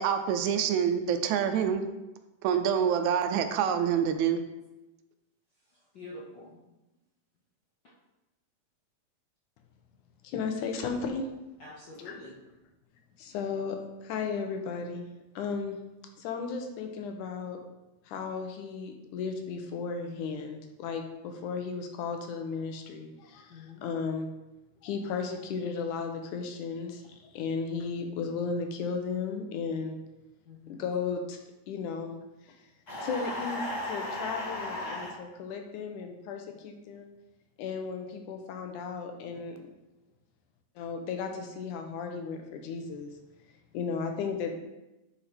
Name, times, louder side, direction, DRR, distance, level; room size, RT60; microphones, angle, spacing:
voice 1, 0.0-1.8 2.4-4.4, right 8 dB, 80° right, 8 dB, 1.9 m, -26 dB
voice 2, 5.7-6.6 7.8-7.9 11.6-12.4 23.5-23.9 30.4-30.8, left 2 dB, 60° left, -5 dB, 1.2 m, -47 dB
voice 3, 10.2-11.3 13.2-15.1 15.4-15.8 16.2-17.6 18.1-24.3 24.8-30.0 30.7-31.4 31.7-32.1 32.5-32.6 33.0-37.1 37.6-39.6 40.8-43.1 43.7-44.6, left 5 dB, 85° left, 4 dB, 2.3 m, -35 dB
sound 1, 32.9-35.1, left 1 dB, 35° left, 2.2 m, -35 dB
10.0 x 4.4 x 4.3 m, 1.0 s
omnidirectional pair, 3.5 m